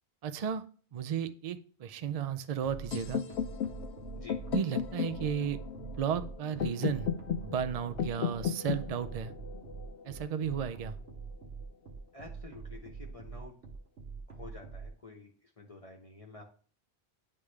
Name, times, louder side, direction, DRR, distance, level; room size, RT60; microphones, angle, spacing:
voice 1, 0.2-0.6 0.9-3.2 4.5-7.1 7.4-9.3 10.0-11.0, right 8 dB, 55° right, 10 dB, 0.4 m, -34 dB
sound 1, 2.6-14.9, right 5 dB, 75° right, 1.2 m, -45 dB
sound 2, 2.9-10.8, left 8 dB, 80° left, 0.9 m, -36 dB
voice 2, 12.1-13.5 14.3-16.4, left 3 dB, 35° left, 0 dB, 0.9 m, -50 dB
9.6 x 3.6 x 3.2 m, 0.42 s
omnidirectional pair, 1.1 m